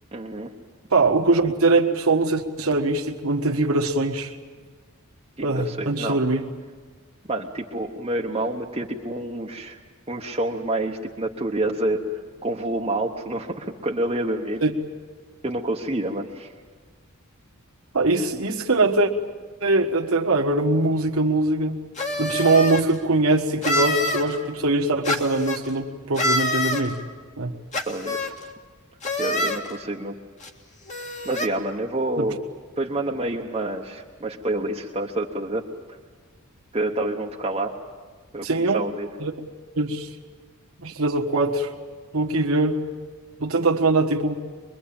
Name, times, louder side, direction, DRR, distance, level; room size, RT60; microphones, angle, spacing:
voice 1, 0.1-0.5 5.4-6.2 7.3-9.8 10.1-12.0 12.4-14.6 15.4-16.5 27.9-28.3 29.2-30.1 31.2-32.4 32.8-35.6 36.7-37.7 38.3-38.5 38.7-39.1, right 1 dB, 25° right, -1 dB, 1.0 m, -28 dB
voice 2, 0.9-4.3 5.4-6.4 14.6-14.7 17.9-19.1 19.6-21.8 22.2-27.0 27.4-27.5 32.2-32.3 38.4-38.8 39.2-39.3 39.8-40.1 40.8-41.7 42.1-42.8 43.4-44.3, right 2 dB, 65° right, -1 dB, 1.5 m, -22 dB
sound 1, 22.0-22.8 23.6-24.2 25.0-25.6 26.2-26.8 27.7-28.3 29.0-29.6 30.4-30.5 30.9-31.5, left 1 dB, 35° left, 2.0 m, -25 dB
24.5 x 22.5 x 8.8 m, 1.5 s
head